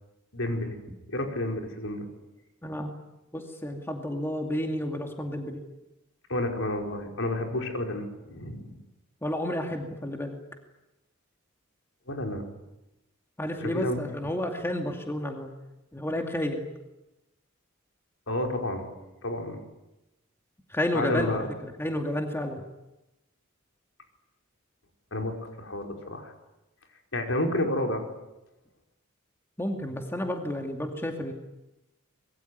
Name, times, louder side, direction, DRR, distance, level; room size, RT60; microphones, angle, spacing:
voice 1, 0.3-0.8 1.1-2.1 6.3-8.7 12.1-12.4 13.6-14.0 18.3-18.9 19.2-19.6 20.9-21.5 25.1-26.3 27.1-28.0, left 1 dB, 70° left, 2 dB, 4.9 m, -30 dB
voice 2, 2.6-3.0 3.3-5.6 9.2-10.4 13.4-15.5 15.9-16.7 20.7-22.6 29.6-31.3, left 1 dB, 10° left, 3 dB, 2.4 m, -31 dB
25.0 x 22.0 x 9.5 m, 0.97 s
head